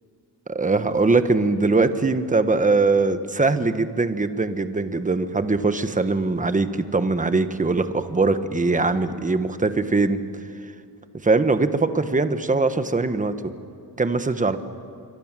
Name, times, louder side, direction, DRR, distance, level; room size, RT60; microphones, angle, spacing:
voice 1, 0.5-10.2 11.2-13.5 14.0-14.6, right 3 dB, 20° right, 10 dB, 1.3 m, -21 dB
27.0 x 24.0 x 7.5 m, 2.5 s
wide cardioid pair, 130°, 42 cm